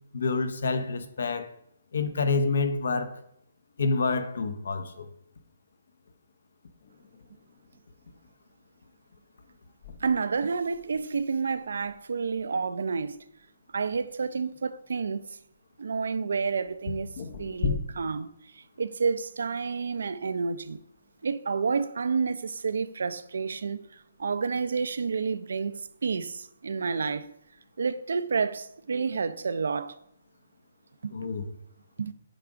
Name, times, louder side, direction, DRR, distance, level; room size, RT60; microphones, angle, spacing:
voice 1, 0.1-1.5 1.9-3.1 3.8-5.1 31.1-31.4, left 3 dB, 70° left, 0.8 m, -27 dB
sound 1, 6.8-8.5 9.5-9.6 9.8-11.4 11.7-11.9 12.4-12.5 14.5-14.6 16.6-17.8, left 5 dB, 40° left, 0.6 m, -35 dB
voice 2, 10.0-13.2 13.7-15.4 15.8-17.1 17.4-20.8 21.2-27.3 27.8-30.0 31.0-31.1 32.0-32.1, right 5 dB, 75° right, 0.5 m, -30 dB
9.0 x 3.6 x 5.0 m
hypercardioid pair, 175°, 0 cm